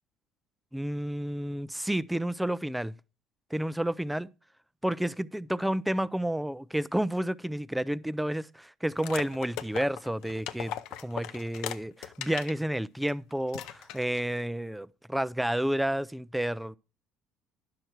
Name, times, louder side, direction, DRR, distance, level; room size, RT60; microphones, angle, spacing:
voice 1, 0.7-2.9 3.5-4.3 4.8-10.7 11.0-16.8, right 1 dB, 5° right, 0.3 m, -30 dB
sound 1, 9.0-12.6 13.0-13.1 13.5-14.3, left 12 dB, 75° left, 0.5 m, -39 dB
10.5 x 6.5 x 4.5 m
supercardioid pair, 100°, 0 cm